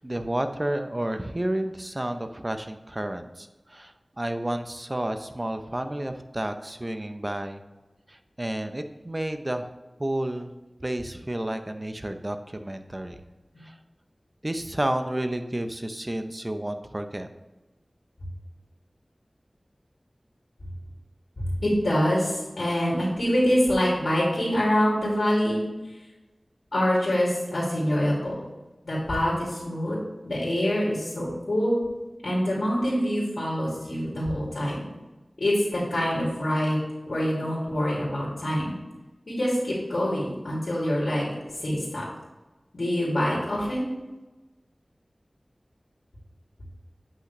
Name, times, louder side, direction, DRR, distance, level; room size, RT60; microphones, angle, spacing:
voice 1, 0.0-7.6 8.1-9.7 10.0-10.5 10.8-13.2 13.6-13.8 14.4-17.3, right 1 dB, 30° right, 7 dB, 0.6 m, -31 dB
voice 2, 21.4-25.6 26.7-28.3 28.8-30.0 30.2-31.8 32.2-34.8 35.4-36.8 37.0-38.7 39.3-41.3 41.6-42.0 42.7-43.9, equal, 85° left, -6 dB, 2.4 m, -25 dB
8.6 x 5.9 x 3.1 m, 1.1 s
wide cardioid pair, 55°, 0 cm